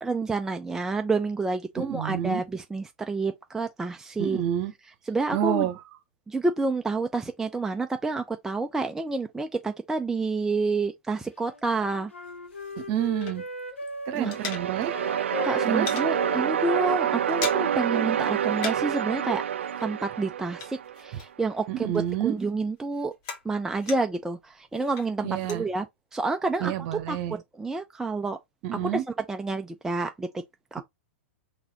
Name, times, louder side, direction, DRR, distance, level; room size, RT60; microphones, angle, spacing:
voice 1, 0.0-4.4 5.1-5.7 6.3-12.1 14.1-14.3 15.4-19.4 19.8-23.1 23.4-25.9 26.1-26.7 27.1-28.4 28.8-30.4 30.7-30.8, right 3 dB, 5° right, 0.4 m, -29 dB
voice 2, 1.8-2.4 4.2-4.7 5.3-5.8 12.7-13.4 14.1-15.0 15.7-15.9 21.7-22.3 25.2-25.6 26.6-27.3 28.6-29.0, right 11 dB, 45° right, 1.0 m, -28 dB
Wind instrument woodwind instrument, 11.4-14.4 14.8-18.2, left 3 dB, 85° left, 0.8 m, -39 dB
sound 1, 12.2-13.7 14.0-15.1 15.4-16.1 16.5-16.7 17.0-17.9 18.2-19.0 19.3-21.6 21.9-24.3 24.7-25.6, left 5 dB, 45° left, 1.5 m, -39 dB
sound 2, 14.1-21.2, right 9 dB, 70° right, 0.4 m, -27 dB
4.0 x 2.8 x 4.0 m
figure-of-eight pair, 105°, 7 cm